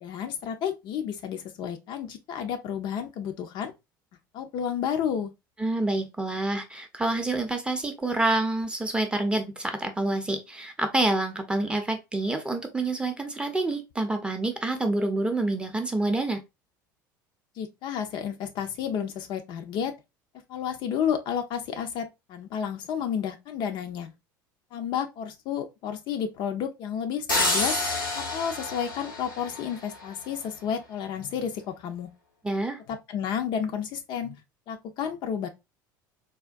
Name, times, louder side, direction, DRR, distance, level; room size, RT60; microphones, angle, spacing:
voice 1, 0.0-3.7 4.3-5.3 17.6-19.9 20.5-24.1 24.7-27.8 28.1-32.1 32.9-34.4 34.7-35.5, left 8 dB, 45° left, 0.4 m, -31 dB
voice 2, 5.6-16.4 32.4-32.8, right 2 dB, 10° right, 0.6 m, -27 dB
sound 1, 27.3-30.1, left 2 dB, 90° left, 0.8 m, -28 dB
3.5 x 2.2 x 2.4 m
figure-of-eight pair, 70°, 11 cm